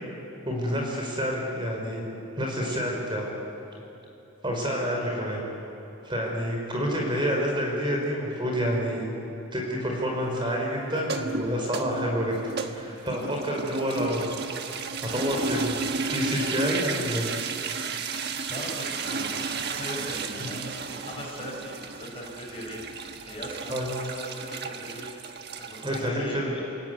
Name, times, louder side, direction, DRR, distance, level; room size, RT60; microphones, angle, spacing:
voice 1, 0.5-2.0 2.4-3.3 4.4-5.4 6.0-9.0 9.5-14.3 15.0-15.8 16.1-17.3 20.3-20.5 23.7-23.9 25.8-26.5, equal, 25° right, -1 dB, 4.9 m, -28 dB
voice 2, 5.0-5.4 15.4-15.7 18.5-25.1 25.6-26.7, left 1 dB, 25° left, -1 dB, 5.3 m, -40 dB
sound 1, 11.0-26.1, right 4 dB, 50° right, 1.4 m, -33 dB
29.0 x 18.0 x 9.4 m, 3.0 s
head